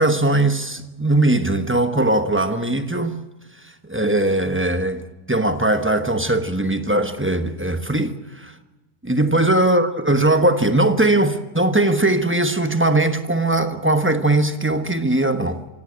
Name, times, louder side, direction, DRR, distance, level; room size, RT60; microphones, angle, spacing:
voice 1, 0.0-3.2 3.9-8.1 8.4-8.5 9.0-15.6, right 2 dB, 10° right, 0.8 m, -19 dB
24.5 x 17.0 x 8.6 m
omnidirectional pair, 1.7 m